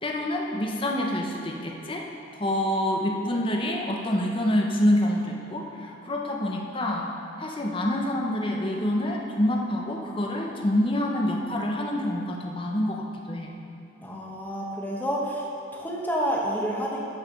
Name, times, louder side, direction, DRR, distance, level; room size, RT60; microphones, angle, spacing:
voice 1, 0.0-2.0 2.3-7.1 7.4-13.5, left 1 dB, 25° left, 0 dB, 0.8 m, -27 dB
voice 2, 14.0-15.5 15.7-17.0, equal, 10° left, -3 dB, 1.2 m, -29 dB
13.5 x 4.9 x 5.2 m, 2.7 s
head